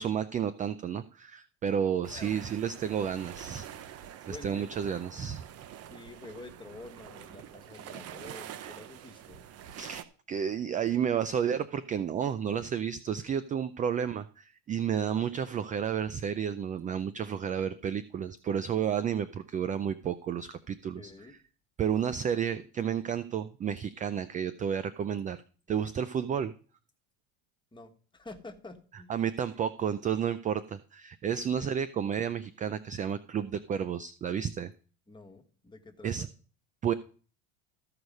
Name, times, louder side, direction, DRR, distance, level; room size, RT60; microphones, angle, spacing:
voice 1, 0.0-3.7 4.3-5.4 8.6-8.7 9.8-21.1 21.8-25.4 25.7-26.5 29.1-34.7 36.0-36.3 36.8-36.9, right 8 dB, 20° right, 14 dB, 0.4 m, -31 dB
sound 1, 2.0-10.0, right 10 dB, 45° right, 0.8 m, -46 dB
voice 2, 4.2-4.7 5.9-9.4 13.9-14.0 21.0-21.3 27.7-29.1 31.3-31.7 35.1-36.3, left 3 dB, 15° left, 5 dB, 1.4 m, -48 dB
14.5 x 4.9 x 5.2 m, 0.40 s
supercardioid pair, 115°, 36 cm